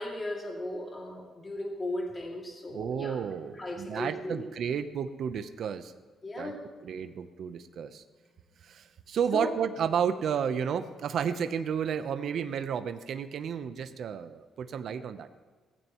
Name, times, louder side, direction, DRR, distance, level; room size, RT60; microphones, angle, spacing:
voice 1, 0.0-3.2 3.5-4.4 6.2-6.6 9.3-9.5, left 1 dB, 20° left, -1 dB, 2.5 m, -36 dB
voice 2, 2.7-5.9 6.4-6.5 6.8-8.0 8.6-15.3, right 7 dB, 55° right, 9 dB, 0.8 m, -32 dB
19.5 x 15.0 x 3.1 m, 1.4 s
cardioid pair, 155°, 0 cm